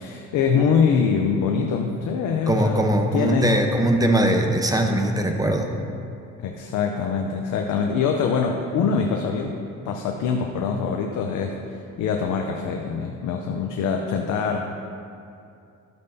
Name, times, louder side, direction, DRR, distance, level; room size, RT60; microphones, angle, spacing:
voice 1, 0.0-3.6 6.4-9.6 9.9-11.6 12.0-14.6, left 6 dB, 80° left, 2 dB, 0.7 m, -24 dB
voice 2, 2.5-5.7, right 1 dB, 10° right, 4 dB, 0.9 m, -21 dB
12.0 x 8.4 x 2.8 m, 2.5 s
cardioid pair, 90°, 30 cm